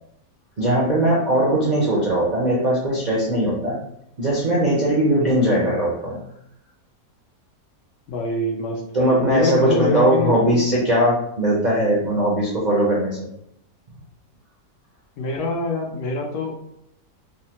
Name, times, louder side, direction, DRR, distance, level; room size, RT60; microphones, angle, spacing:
voice 1, 0.6-3.8 4.2-6.2 8.9-13.2, right 1 dB, 70° right, -6 dB, 0.4 m, -19 dB
voice 2, 8.1-10.3 15.2-16.5, left 2 dB, 85° left, 1 dB, 1.3 m, -25 dB
3.6 x 2.1 x 2.8 m, 0.76 s
omnidirectional pair, 1.7 m